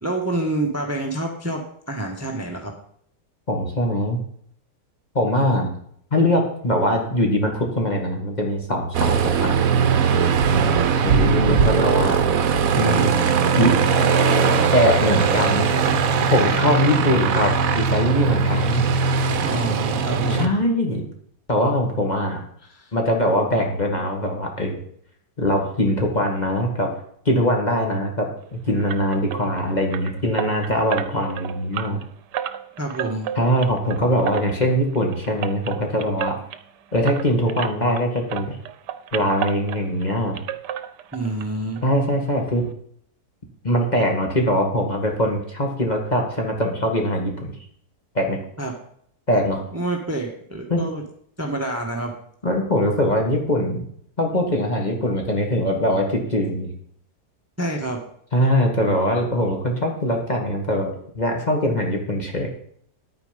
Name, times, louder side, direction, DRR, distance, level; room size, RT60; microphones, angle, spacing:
voice 1, 0.0-2.7 19.4-20.5 22.7-22.9 32.8-33.3 41.1-41.8 48.6-48.7 49.7-51.0 51.4-52.1 57.6-58.0, right 2 dB, 10° right, 2 dB, 1.3 m, -27 dB
voice 2, 3.5-4.2 5.1-5.7 6.1-9.6 11.0-12.2 12.8-13.1 13.6-13.8 14.7-15.7 16.3-18.9 20.3-21.0 21.5-22.4 22.9-24.8 25.4-26.9 27.3-32.0 33.4-36.3 36.9-38.6 39.1-40.4 41.8-42.7 43.6-47.5 48.1-48.4 49.3-49.6 50.7-50.9 52.4-53.8 54.2-56.7 58.3-62.5, equal, 25° left, 1 dB, 2.0 m, -22 dB
Aircraft, 8.9-20.5, right 5 dB, 60° right, 1.2 m, -19 dB
sound 1, 28.9-38.0 38.3-40.1 40.3-41.5 41.7-41.8 42.3-42.4 42.7-42.8, right 10 dB, 90° right, 1.4 m, -32 dB
10.0 x 9.1 x 5.2 m, 0.65 s
omnidirectional pair, 1.8 m